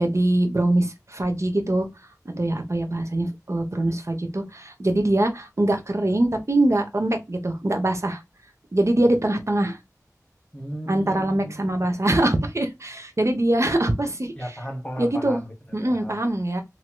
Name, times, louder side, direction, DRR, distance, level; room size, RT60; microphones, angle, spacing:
voice 1, 0.0-1.9 2.2-8.2 8.7-9.8 10.9-14.3 15.0-15.4 15.7-16.6, right 1 dB, 50° right, 0.9 m, -23 dB
voice 2, 10.5-11.9 14.4-16.2, equal, 15° left, 1.2 m, -36 dB
3.0 x 2.9 x 2.2 m
wide cardioid pair, 45°, 6 cm